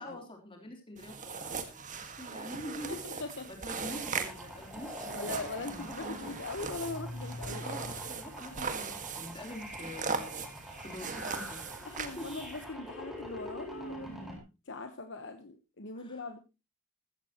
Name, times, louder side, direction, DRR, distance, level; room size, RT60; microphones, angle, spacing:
voice 1, 0.0-6.3 7.6-11.6 12.2-12.4 16.0-16.4, left 1 dB, 25° left, 3 dB, 3.5 m, -45 dB
sound 1, 1.0-12.6, right 5 dB, 35° right, 1.7 m, -40 dB
voice 2, 2.9-3.5 5.1-7.9 11.8-16.4, left 3 dB, 55° left, 8 dB, 1.2 m, -41 dB
sound 2, 3.8-14.4, equal, ahead, 4.4 m, -45 dB
14.5 x 14.0 x 3.0 m, 0.28 s
head